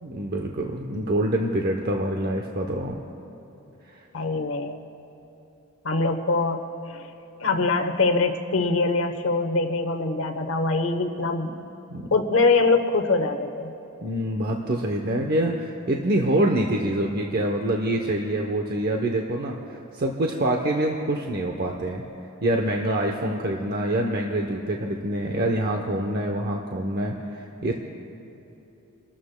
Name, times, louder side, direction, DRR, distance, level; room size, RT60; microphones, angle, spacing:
voice 1, 0.0-3.0 11.9-12.1 14.0-22.0 22.4-27.7, right 1 dB, 45° right, 2 dB, 0.8 m, -26 dB
voice 2, 4.1-4.8 5.8-7.1 7.4-11.7 12.1-13.7, left 3 dB, 65° left, 6 dB, 0.9 m, -23 dB
30.0 x 13.0 x 2.2 m, 3.0 s
head